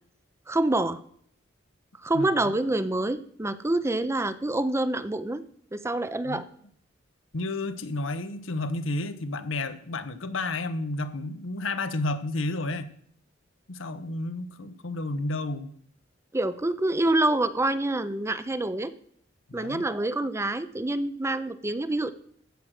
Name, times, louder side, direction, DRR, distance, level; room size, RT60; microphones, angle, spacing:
voice 1, 0.5-1.0 2.0-5.4 5.7-6.4 16.3-18.9 19.5-22.1, right 2 dB, 15° right, 13 dB, 0.5 m, -26 dB
voice 2, 2.1-2.5 6.2-6.4 7.3-12.9 13.7-15.7 19.5-19.9, left 2 dB, 85° left, 11 dB, 0.9 m, -31 dB
15.0 x 6.2 x 6.5 m, 0.63 s
head